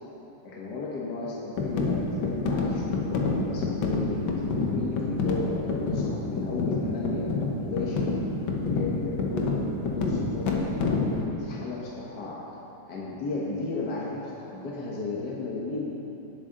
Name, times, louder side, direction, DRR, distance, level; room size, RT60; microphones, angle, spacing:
voice 1, 0.4-7.3 7.6-8.1 8.6-10.6 11.1-12.4 12.9-15.9, left 3 dB, 60° left, -4 dB, 1.7 m, -34 dB
sound 1, 1.6-11.2, left 3 dB, 85° left, 1.9 m, -28 dB
17.5 x 8.4 x 3.8 m, 2.9 s
omnidirectional pair, 2.1 m